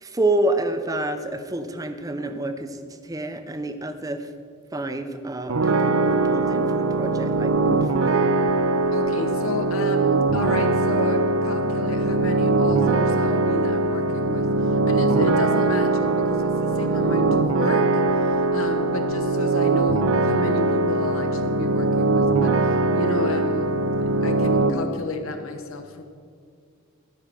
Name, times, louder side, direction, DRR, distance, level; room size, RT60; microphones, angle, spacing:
voice 1, 0.0-2.8 3.0-4.3 4.7-8.3, right 2 dB, 15° right, 8 dB, 0.5 m, -28 dB
sound 1, 5.5-24.7, right 2 dB, 80° right, 0.6 m, -21 dB
voice 2, 8.9-23.7 24.0-26.0, left 1 dB, 75° left, 7 dB, 1.0 m, -32 dB
12.5 x 5.4 x 6.2 m, 2.2 s
head